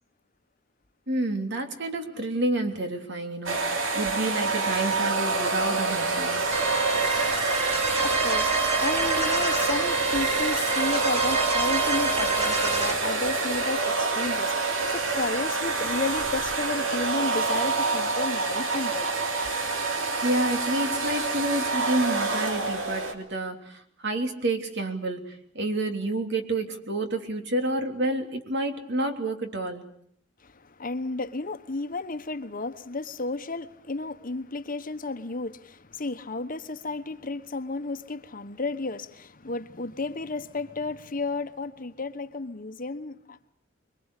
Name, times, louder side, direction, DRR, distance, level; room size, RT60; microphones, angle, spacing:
voice 1, 1.1-6.4 20.2-29.9, right 1 dB, 60° right, 3.3 m, -29 dB
sound 1, 3.5-23.1, right 3 dB, 85° right, 3.3 m, -27 dB
sound 2, 6.5-12.9, right 3 dB, 35° right, 4.1 m, -27 dB
voice 2, 8.0-8.5 8.8-19.1 30.4-43.5, left 3 dB, 45° left, 1.3 m, -32 dB
26.0 x 22.5 x 8.4 m
head